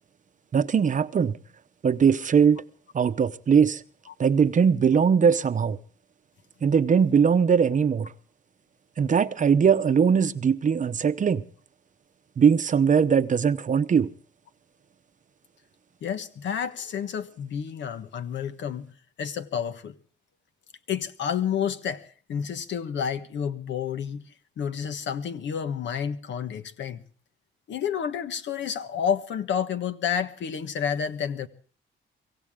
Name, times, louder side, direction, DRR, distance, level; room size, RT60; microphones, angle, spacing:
voice 1, 0.5-1.4 1.8-2.6 2.9-3.8 4.2-5.8 6.6-8.1 9.0-11.4 12.4-14.1, right 6 dB, 40° right, 0.8 m, -20 dB
voice 2, 16.0-18.9 19.2-19.9 20.9-24.2 24.6-27.0 27.7-31.5, left 8 dB, 70° left, 1.4 m, -30 dB
24.5 x 16.0 x 3.7 m
cardioid pair, 90°, 20 cm